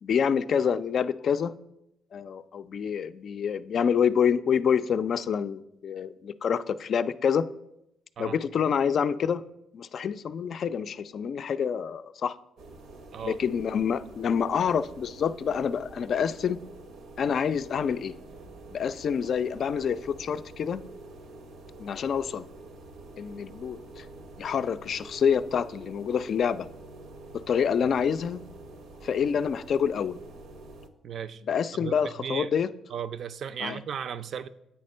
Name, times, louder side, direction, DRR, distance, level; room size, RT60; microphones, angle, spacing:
voice 1, 0.0-1.5 2.1-7.4 8.2-9.4 9.7-12.4 13.2-16.6 17.2-18.1 18.7-20.8 21.8-22.5 23.2-24.1 24.4-26.7 27.3-28.4 29.0-30.2 31.5-32.7 33.6-33.8, left 7 dB, 60° left, 0.3 m, -27 dB
sound 1, 12.6-30.9, right 2 dB, 90° right, 0.7 m, -47 dB
voice 2, 31.0-31.4 31.8-32.5 32.9-34.5, right 8 dB, 60° right, 0.4 m, -35 dB
8.4 x 4.3 x 5.4 m
cardioid pair, 90°, 0 cm